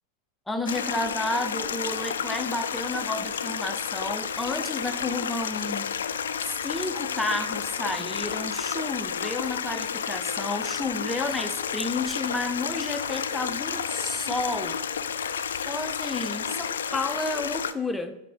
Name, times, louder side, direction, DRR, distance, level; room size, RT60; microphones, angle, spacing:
voice 1, 0.5-5.9 6.4-14.8 15.6-18.2, left 2 dB, 5° left, 7 dB, 0.6 m, -31 dB
Stream, 0.7-17.7, left 7 dB, 65° left, 0.3 m, -31 dB
8.4 x 4.1 x 3.4 m, 0.88 s
figure-of-eight pair, 90°, 0 cm